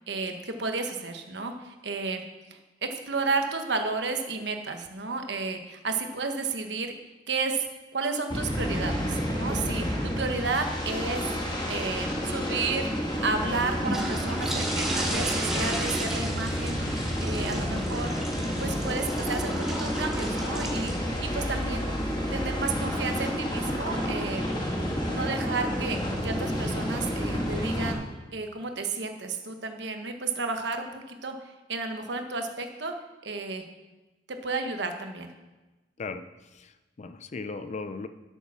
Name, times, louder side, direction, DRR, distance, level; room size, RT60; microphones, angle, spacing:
voice 1, 0.1-2.2 2.5-6.9 7.3-7.6 7.9-11.3 11.7-18.1 18.6-20.9 21.2-21.8 22.3-24.4 25.1-28.0 28.3-31.3 31.7-32.9 33.2-33.6 34.3-35.3, right 4 dB, 75° right, 5 dB, 1.1 m, -32 dB
sound 1, 8.3-27.9, equal, 25° left, 1.6 m, -30 dB
sound 2, 13.0-24.0, right 1 dB, 5° right, 1.7 m, -37 dB
voice 2, 36.0-38.1, left 4 dB, 40° left, 10 dB, 0.5 m, -37 dB
8.4 x 7.0 x 6.0 m, 1.1 s
head